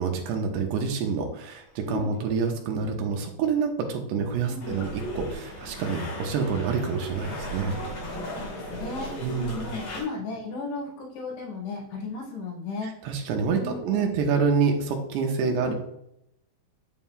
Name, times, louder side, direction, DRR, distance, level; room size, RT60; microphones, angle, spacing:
voice 1, 0.0-7.8 9.2-9.7 13.0-15.7, right 5 dB, 80° right, 3 dB, 3.0 m, -27 dB
voice 2, 4.5-4.8 8.5-13.1 13.5-14.2 15.4-15.7, left 4 dB, 75° left, -4 dB, 4.1 m, -35 dB
sound 1, 4.6-10.0, equal, 50° left, 4.4 m, -36 dB
8.4 x 7.5 x 2.4 m, 0.78 s
omnidirectional pair, 5.0 m